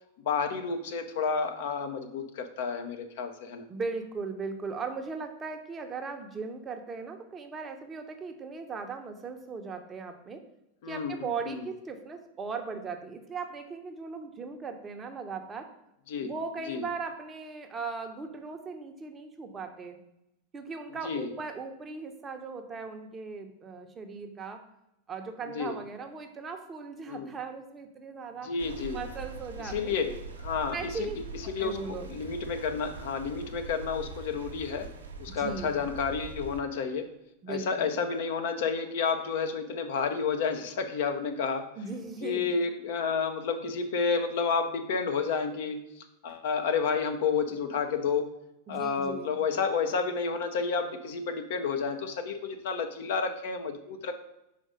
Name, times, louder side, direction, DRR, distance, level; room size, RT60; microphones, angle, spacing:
voice 1, 0.2-3.6 10.8-11.6 16.1-16.3 16.7-16.8 21.0-21.3 25.5-25.8 27.1-27.3 28.4-29.0 29.6-30.1 30.4-34.9 35.2-37.1 37.5-41.7 42.2-48.3 48.7-54.1, left 5 dB, 55° left, 6 dB, 0.7 m, -30 dB
voice 2, 3.7-10.4 10.9-15.7 16.2-20.0 20.5-24.6 25.1-28.5 28.9-30.2 30.7-31.2 31.4-32.1 35.3-35.8 37.4-38.0 41.8-42.4 48.7-49.4, right 4 dB, 20° right, 6 dB, 0.7 m, -38 dB
sound 1, 28.6-36.6, right 3 dB, 70° right, 0.8 m, -43 dB
5.1 x 3.9 x 5.1 m, 0.86 s
figure-of-eight pair, 90°, 0 cm